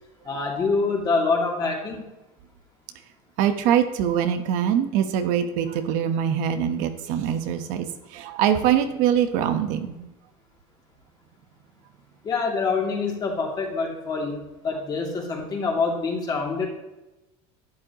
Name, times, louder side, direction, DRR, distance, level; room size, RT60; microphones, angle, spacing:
voice 1, 0.2-2.0 12.2-16.7, left 4 dB, 30° left, 0 dB, 2.6 m, -25 dB
voice 2, 3.4-10.1, right 9 dB, 65° right, 8 dB, 1.1 m, -23 dB
11.5 x 9.7 x 3.0 m, 1.0 s
cardioid pair, 145°, 14 cm